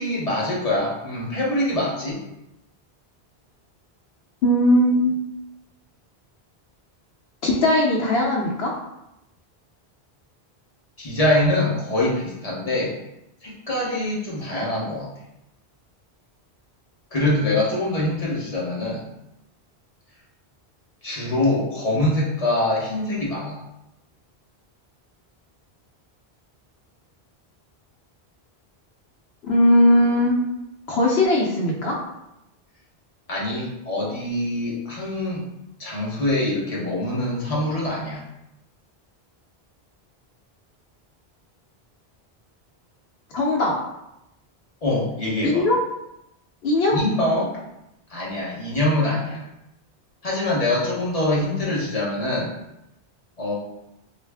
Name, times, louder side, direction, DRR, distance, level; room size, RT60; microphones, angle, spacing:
voice 1, 0.0-2.2 11.0-12.9 13.4-15.1 17.1-19.1 21.0-23.6 33.3-35.4 35.8-38.2 44.8-45.7 46.9-47.5 48.1-49.4 50.2-52.5 53.4-53.5, left 1 dB, 40° left, -5 dB, 0.9 m, -24 dB
voice 2, 4.4-5.2 7.4-8.7 29.4-30.5 30.9-32.0 43.3-43.7 45.4-45.8 46.6-47.0, left 1 dB, 75° left, -2 dB, 0.9 m, -19 dB
3.1 x 2.4 x 3.4 m, 0.87 s
omnidirectional pair, 1.1 m